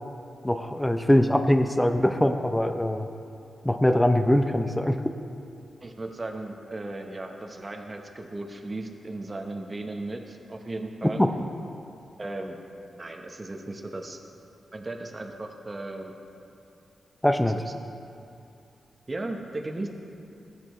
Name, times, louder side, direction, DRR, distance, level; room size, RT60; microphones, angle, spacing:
voice 1, 0.4-3.1 3.6-5.0 11.2-11.3 17.2-17.6, left 1 dB, 10° left, 8 dB, 0.6 m, -22 dB
voice 2, 5.8-11.2 12.2-12.6 13.0-14.2 14.7-16.1 17.4-17.7 19.1-19.9, right 2 dB, 35° right, 3 dB, 1.0 m, -36 dB
15.0 x 8.6 x 3.1 m, 2.7 s
cardioid pair, 60°, 0 cm